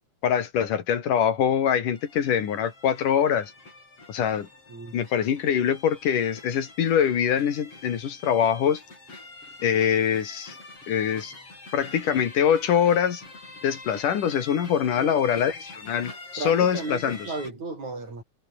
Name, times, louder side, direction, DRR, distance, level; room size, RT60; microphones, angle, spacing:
voice 1, 0.2-3.5 4.1-4.5 4.9-8.8 9.6-10.6 10.9-11.3 11.7-13.2 13.6-17.2, left 8 dB, 85° left, 4.0 m, -24 dB
sound 1, 1.9-17.5, left 2 dB, 45° left, 8.9 m, -45 dB
voice 2, 15.0-15.4 16.4-18.2, right 3 dB, 65° right, 9.4 m, -35 dB
omnidirectional pair, 3.6 m